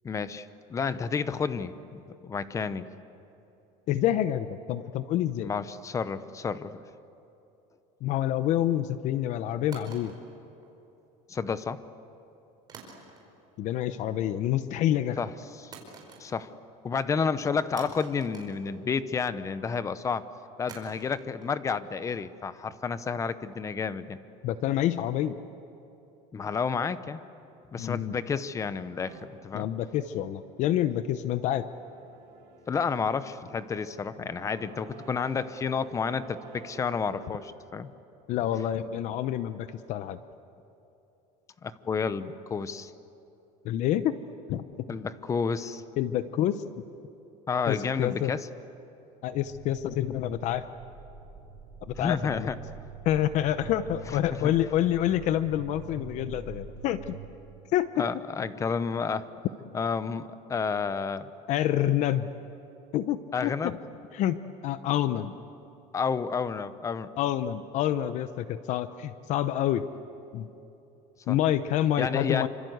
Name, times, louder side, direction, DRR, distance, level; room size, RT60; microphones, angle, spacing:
voice 1, 0.0-2.8 5.4-6.8 11.3-11.8 15.2-15.9 16.2-16.6 16.8-20.3 20.6-24.2 26.3-27.2 27.7-29.7 32.7-37.9 41.6-42.9 44.9-45.8 47.5-48.5 52.0-52.6 54.1-54.5 58.0-59.3 59.7-61.3 63.3-63.8 65.9-67.1 71.3-71.4 72.0-72.5, left 5 dB, 20° left, 14 dB, 0.8 m, -31 dB
voice 2, 3.9-5.5 8.0-10.1 13.6-15.2 24.4-25.4 27.8-28.2 29.5-31.6 38.3-40.2 43.6-44.2 44.5-45.0 46.0-46.9 47.7-48.3 49.2-50.6 51.9-52.5 53.0-57.2 57.7-58.1 61.5-62.3 62.9-63.8 64.1-64.4 64.6-65.4 67.2-69.9 70.3-70.5 71.3-72.5, left 12 dB, 50° left, 12 dB, 0.8 m, -27 dB
sound 1, 9.7-11.1 12.7-13.5 13.8-14.3 15.7-16.7 16.9-17.0 17.8-19.3 20.7-23.7, right 4 dB, 25° right, 4.7 m, -50 dB
sound 2, 29.0-29.3 30.4-37.5, right 5 dB, 70° right, 5.4 m, -50 dB
sound 3, 49.3-57.3, right 7 dB, 50° right, 7.0 m, -45 dB
28.0 x 25.5 x 8.0 m, 3.0 s
cardioid pair, 155°, 16 cm